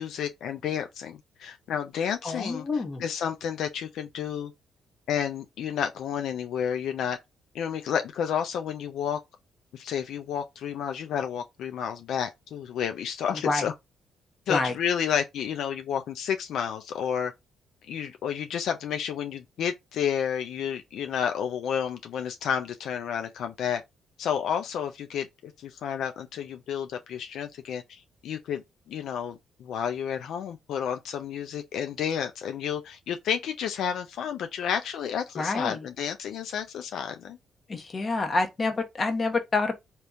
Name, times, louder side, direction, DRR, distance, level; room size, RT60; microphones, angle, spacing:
voice 1, 0.0-2.7 3.0-4.5 5.1-7.2 7.5-9.2 9.7-13.7 14.5-17.3 17.9-23.8 24.2-28.6 28.9-37.4, left 8 dB, 75° left, 0.4 m, -31 dB
voice 2, 2.2-3.0 13.4-13.7 14.5-14.7 35.4-35.8 37.7-39.8, left 3 dB, 35° left, 1.0 m, -27 dB
3.4 x 2.9 x 2.5 m
cardioid pair, 90°, 0 cm